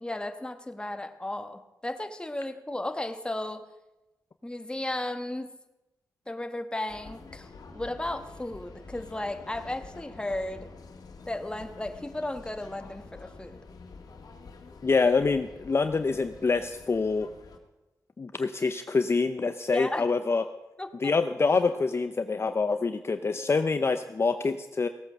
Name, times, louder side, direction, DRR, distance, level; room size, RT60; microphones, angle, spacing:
voice 1, 0.0-3.7 4.4-5.5 6.3-10.7 11.3-13.6 19.7-20.0 20.8-21.1, left 1 dB, 15° left, 8 dB, 1.2 m, -34 dB
sound 1, 6.9-17.6, left 4 dB, 70° left, 1.9 m, -48 dB
voice 2, 14.8-17.3 18.2-20.4 21.0-24.9, left 4 dB, 40° left, 9 dB, 0.6 m, -26 dB
17.0 x 8.7 x 6.5 m, 1.0 s
cardioid pair, 70°, 7 cm